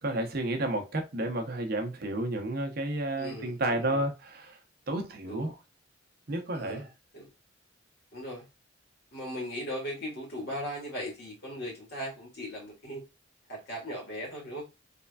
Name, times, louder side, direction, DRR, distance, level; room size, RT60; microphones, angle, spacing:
voice 1, 0.0-4.6 4.9-5.6 6.3-6.9, right 1 dB, 50° right, 0.8 m, -31 dB
voice 2, 3.2-4.1 5.3-5.5 6.5-6.9 7.1-7.3 8.1-8.5 9.1-13.0 13.5-14.7, equal, 55° left, 2.0 m, -38 dB
3.6 x 3.3 x 2.3 m
head